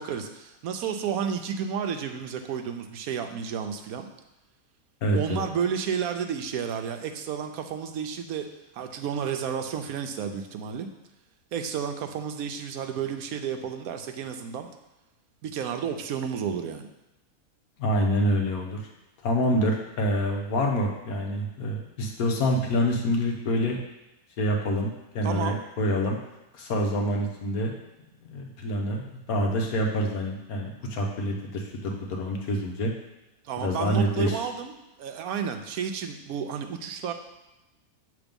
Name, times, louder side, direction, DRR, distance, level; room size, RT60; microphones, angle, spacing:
voice 1, 0.0-4.1 5.1-8.5 8.7-10.9 11.5-14.7 15.4-16.9 25.2-25.6 33.4-34.7 35.0-37.1, right 7 dB, 75° right, 6 dB, 1.1 m, -31 dB
voice 2, 5.0-5.4 17.8-18.8 19.2-23.8 24.4-26.2 26.5-27.7 28.3-32.9 33.6-34.4, equal, 75° left, 1 dB, 1.4 m, -26 dB
7.1 x 3.4 x 5.2 m, 0.99 s
omnidirectional pair, 1.6 m